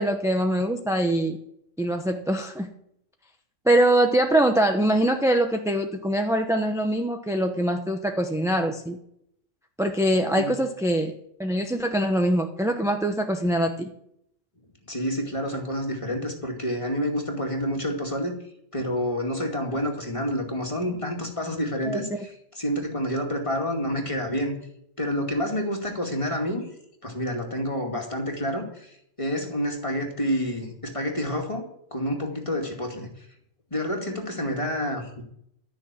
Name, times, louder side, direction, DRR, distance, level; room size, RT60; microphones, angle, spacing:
voice 1, 0.0-1.4 1.8-2.7 3.6-9.0 9.8-11.1 11.4-13.9 21.9-22.0, right 1 dB, 5° right, 4 dB, 0.7 m, -23 dB
voice 2, 14.9-18.4 18.7-24.6 25.0-26.7 27.0-31.6 31.9-33.3 33.7-35.2, equal, 25° left, 1 dB, 2.3 m, -28 dB
14.0 x 6.3 x 8.9 m, 0.74 s
omnidirectional pair, 1.3 m